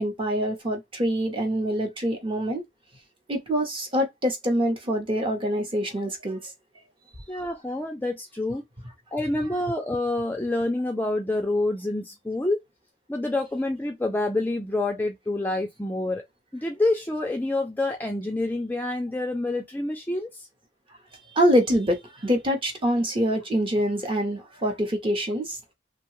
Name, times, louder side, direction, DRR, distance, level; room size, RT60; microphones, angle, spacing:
voice 1, 0.0-2.6 3.3-6.5 21.3-25.6, equal, 25° right, 0.8 m, -25 dB
voice 2, 7.3-8.6 9.1-12.6 13.1-16.2 16.5-20.3, left 2 dB, 10° left, 0.3 m, -27 dB
2.7 x 2.2 x 3.0 m
head